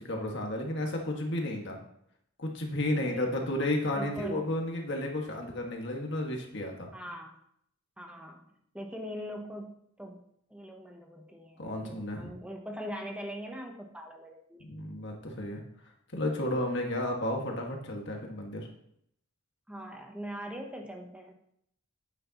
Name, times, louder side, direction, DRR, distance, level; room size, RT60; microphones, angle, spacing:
voice 1, 0.1-1.8 2.4-6.9 11.6-12.3 14.6-15.6 16.1-18.6, left 1 dB, 55° left, 1 dB, 1.8 m, -32 dB
voice 2, 3.0-3.5 3.9-4.4 6.9-7.3 8.0-8.4 8.7-10.2 10.5-14.6 19.7-21.3, equal, 5° right, 2 dB, 0.9 m, -41 dB
11.0 x 9.0 x 3.0 m, 0.72 s
head